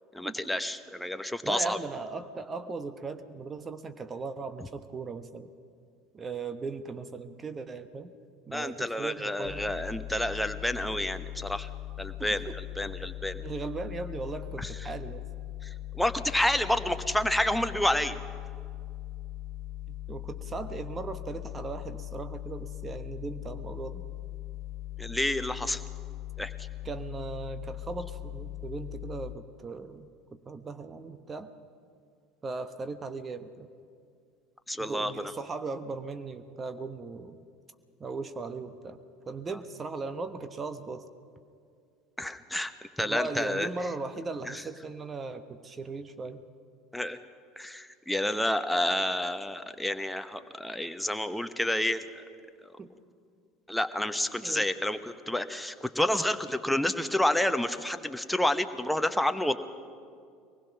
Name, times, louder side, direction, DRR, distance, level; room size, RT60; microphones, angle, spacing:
voice 1, 0.1-1.8 8.5-11.7 12.0-12.5 12.8-13.4 14.6-14.7 15.6-15.7 15.9-18.2 25.0-25.8 26.4-26.5 34.7-35.1 42.2-42.7 43.0-43.7 46.9-47.2 47.6-52.0 53.7-59.6, left 1 dB, 5° left, 9 dB, 1.1 m, -29 dB
voice 2, 1.4-5.5 6.1-8.1 8.5-9.8 12.5-12.6 13.4-15.2 19.9-24.0 26.8-31.5 32.4-33.7 34.8-37.4 38.0-39.0 39.3-41.0 43.0-46.4 52.8-52.9 54.4-54.7, right 4 dB, 25° right, 10 dB, 1.1 m, -38 dB
sound 1, 9.4-29.3, left 15 dB, 60° left, 1.0 m, -40 dB
23.5 x 20.0 x 6.0 m, 2.3 s
figure-of-eight pair, 70°, 0 cm